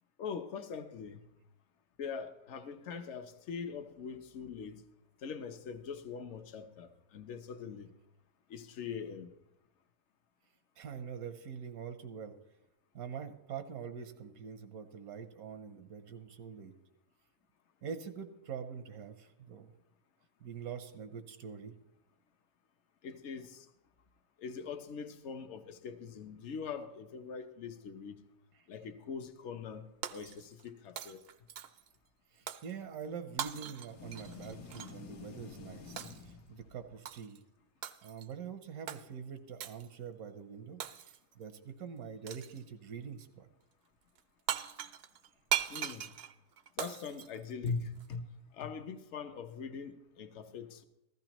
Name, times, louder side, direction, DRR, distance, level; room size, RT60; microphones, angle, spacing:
voice 1, 0.2-1.2 2.0-4.8 5.2-7.9 8.5-9.3 23.0-23.7 24.4-28.2 28.7-31.2 45.7-46.1 46.8-48.3 48.5-50.8, left 5 dB, 60° left, 1.0 m, -42 dB
voice 2, 10.8-12.4 12.9-16.7 17.8-19.7 20.4-21.7 32.3-37.4 38.0-43.5, right 7 dB, 85° right, 1.2 m, -45 dB
Shatter, 30.0-30.7 31.0-31.9 32.5-32.7 33.4-35.0 36.0-36.3 37.0-37.4 37.8-38.3 38.9-39.0 39.6-39.9 40.8-41.3 42.3-42.6 44.2-44.3 44.5-48.1, right 10 dB, 70° right, 0.6 m, -39 dB
sound 1, 33.9-37.0, left 5 dB, 85° left, 1.3 m, -50 dB
14.5 x 13.5 x 3.0 m
omnidirectional pair, 1.5 m